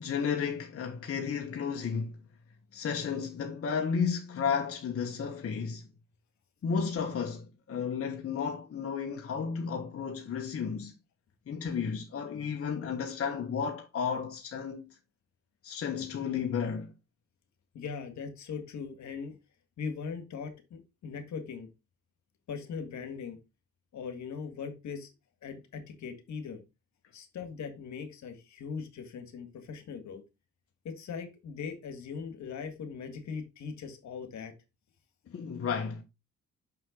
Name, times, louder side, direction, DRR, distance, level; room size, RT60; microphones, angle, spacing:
voice 1, 0.0-2.2 2.7-5.9 6.6-10.9 11.5-14.9 15.6-16.9 35.3-36.0, left 6 dB, 50° left, 1.4 m, -33 dB
voice 2, 17.7-19.3 19.8-21.7 22.5-23.4 23.9-25.1 25.4-26.6 27.1-30.2 30.8-34.5, left 6 dB, 65° left, 2.0 m, -40 dB
6.2 x 5.8 x 3.9 m
cardioid pair, 90°, 30 cm